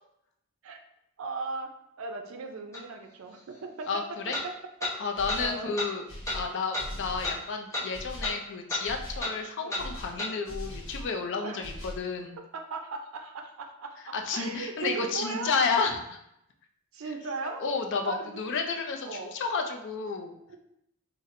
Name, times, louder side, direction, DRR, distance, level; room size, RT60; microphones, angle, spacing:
voice 1, 1.2-1.7 2.0-4.0 4.8-4.9 5.4-5.7 9.6-9.9 11.4-11.7 12.5-15.5 16.9-17.6 18.0-18.4 19.0-19.3 20.5-20.6, right 3 dB, 70° right, 4 dB, 0.4 m, -37 dB
sound 1, 2.7-2.8 4.3-4.5 4.8-4.9 5.3-5.4 5.8-5.9 6.2-6.4 6.7-6.9 7.2-7.4 7.7-7.9 8.2-8.4 8.7-8.8 9.2-9.3 9.7-9.8 10.2-10.3, left 2 dB, 15° left, 0.7 m, -32 dB
voice 2, 3.9-4.3 5.0-6.0 6.3-12.4 14.1-16.0 17.6-20.4, left 4 dB, 55° left, 4 dB, 0.4 m, -31 dB
sound 2, 5.1-5.6 6.1-7.4 7.9-8.4 8.8-9.3 9.8-11.1 11.6-12.1, equal, 80° left, 0.9 m, -40 dB
4.1 x 2.0 x 2.5 m, 0.80 s
head